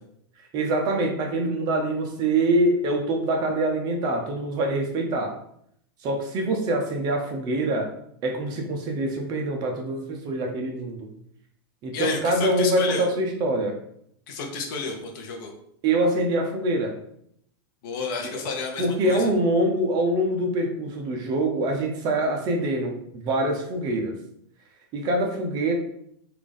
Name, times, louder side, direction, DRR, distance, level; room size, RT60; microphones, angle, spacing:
voice 1, 0.5-5.4 6.0-7.9 8.2-11.0 11.8-13.7 15.8-16.9 18.8-24.2 24.9-25.7, right 1 dB, 30° right, 2 dB, 0.6 m, -24 dB
voice 2, 11.9-13.1 14.3-15.5 17.8-19.3, left 4 dB, 50° left, 2 dB, 0.8 m, -31 dB
3.3 x 2.5 x 3.7 m, 0.70 s
supercardioid pair, 155°, 13 cm